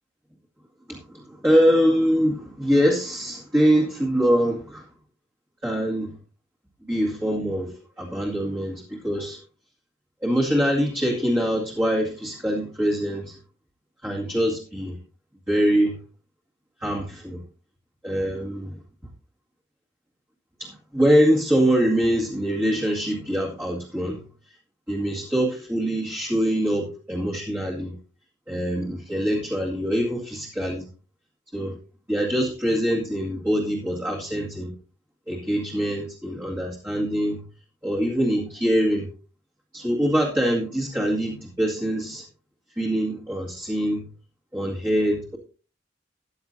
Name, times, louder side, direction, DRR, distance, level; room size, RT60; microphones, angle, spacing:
voice 1, 0.9-4.9 5.6-6.1 6.8-9.4 10.2-13.4 14.0-15.0 15.5-16.0 16.8-17.4 18.0-18.8 20.6-24.2 24.9-28.0 28.5-30.9 31.5-31.8 32.1-34.7 35.3-37.4 37.8-39.1 39.7-42.2 42.7-44.1 44.5-45.4, equal, 10° right, -3 dB, 2.2 m, -24 dB
14.0 x 10.5 x 2.7 m, 0.34 s
head